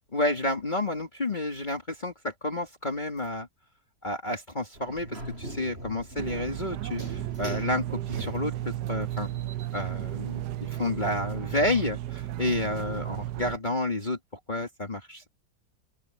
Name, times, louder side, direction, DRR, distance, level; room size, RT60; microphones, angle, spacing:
voice 1, 0.1-3.5 4.0-9.3 9.7-14.2 14.5-15.3, left 2 dB, 25° left, 2.5 m, -30 dB
sound 1, 4.7-8.8, right 1 dB, 35° right, 8.5 m, -41 dB
sound 2, 6.2-13.6, right 13 dB, 70° right, 1.2 m, -34 dB
open air
omnidirectional pair, 1.9 m